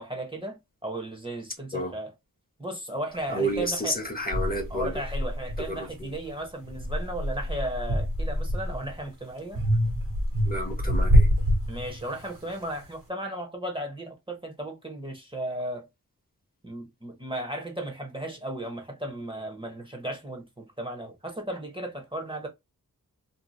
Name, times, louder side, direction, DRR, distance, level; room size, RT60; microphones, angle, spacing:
voice 1, 0.0-2.1 2.6-4.0 4.7-9.6 11.7-15.9 16.6-22.5, right 1 dB, 15° right, 0.8 m, -35 dB
voice 2, 3.3-5.0 5.7-6.1 10.4-11.3, equal, 25° left, 0.8 m, -30 dB
sound 1, 3.5-3.6 4.3-6.2 6.6-9.0 9.6-12.3, equal, 65° right, 1.2 m, -25 dB
2.6 x 2.1 x 3.0 m
wide cardioid pair, 75°, 34 cm